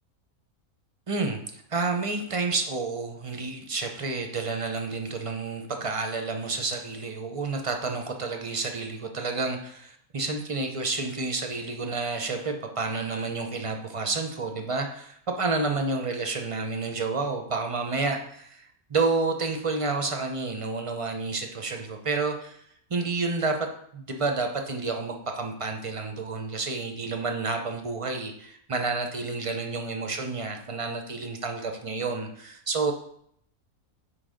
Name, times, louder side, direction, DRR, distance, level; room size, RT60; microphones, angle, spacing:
voice 1, 1.1-22.6 22.9-23.6 23.9-32.9, right 3 dB, 40° right, 4 dB, 0.4 m, -30 dB
5.8 x 4.8 x 5.0 m, 0.69 s
omnidirectional pair, 1.5 m